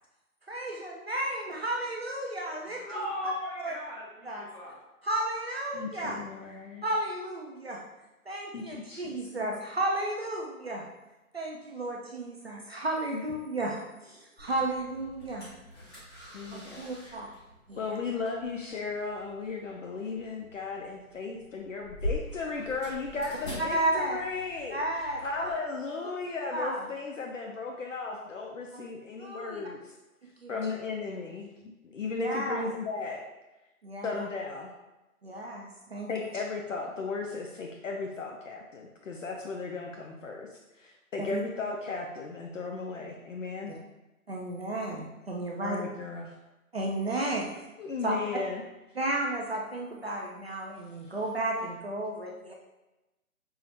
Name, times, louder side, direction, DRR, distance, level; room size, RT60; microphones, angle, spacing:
voice 1, 0.5-3.1 3.6-3.7 4.2-4.4 5.0-6.2 6.8-7.8 8.3-10.8 11.3-13.8 14.0-15.5 16.5-17.3 17.7-17.8 23.6-24.2 24.7-25.2 25.5-25.6 26.5-26.8 28.7-28.8 29.2-29.6 30.4-30.5 32.2-32.6 33.8-34.2 35.2-36.1 41.2-41.4 44.3-45.8 46.7-47.5 48.0-48.1 49.0-52.5, right 1 dB, 45° right, -1 dB, 0.5 m, -33 dB
voice 2, 2.8-4.8, equal, 35° left, -8 dB, 1.5 m, -37 dB
voice 3, 5.7-6.8 8.5-9.5 13.1-13.2 15.8-15.9 16.3-17.3 17.8-24.8 25.2-29.9 30.5-33.2 34.0-34.7 36.1-43.7 45.6-46.3 47.8-48.6, left 4 dB, 60° left, 1 dB, 0.5 m, -36 dB
sound 1, 14.4-25.5, left 1 dB, 15° left, 1.3 m, -43 dB
5.6 x 2.1 x 2.7 m, 1.0 s
hypercardioid pair, 165°, 44 cm